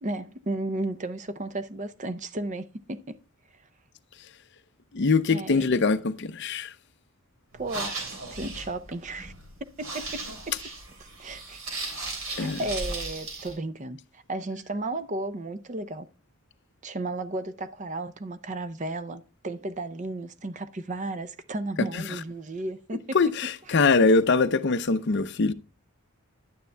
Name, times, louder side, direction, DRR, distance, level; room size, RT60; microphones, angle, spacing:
voice 1, 0.0-3.2 5.3-5.7 7.5-8.0 8.3-9.3 9.8-10.6 11.0-11.6 12.3-16.1 16.8-23.2 23.7-23.8, right 2 dB, 35° right, 0.5 m, -34 dB
voice 2, 4.9-6.7 12.4-12.6 23.1-25.5, left 4 dB, 50° left, 0.5 m, -22 dB
sound 1, 7.5-13.5, right 2 dB, 65° right, 3.2 m, -36 dB
11.5 x 9.5 x 2.2 m
head